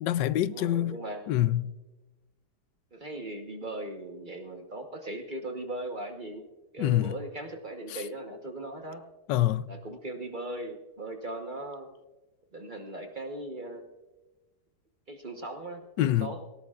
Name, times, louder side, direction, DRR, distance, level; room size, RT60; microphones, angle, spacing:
voice 1, 0.0-1.0 1.3-1.7 6.8-7.1 7.9-8.0 9.3-9.7 16.0-16.3, left 13 dB, 90° left, 1.2 m, -26 dB
voice 2, 0.5-1.3 2.9-6.4 6.7-9.0 9.7-11.9 12.5-13.8 15.1-16.4, right 1 dB, 30° right, 1.2 m, -38 dB
18.0 x 18.0 x 2.4 m
omnidirectional pair, 1.8 m